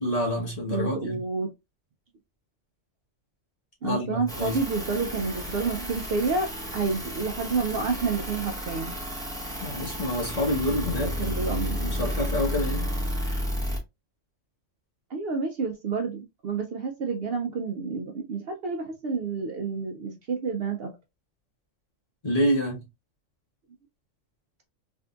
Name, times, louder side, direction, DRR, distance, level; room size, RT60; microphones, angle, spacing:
voice 1, 0.0-1.2 3.8-4.6 9.6-11.1 11.8-12.9 22.2-22.8, left 1 dB, 35° left, 1.0 m, -27 dB
voice 2, 0.7-1.5 3.8-9.0 11.0-11.9 15.1-20.9, right 4 dB, 60° right, 0.7 m, -29 dB
sound 1, 4.3-13.8, equal, 5° left, 0.6 m, -32 dB
3.5 x 2.6 x 2.3 m
omnidirectional pair, 1.3 m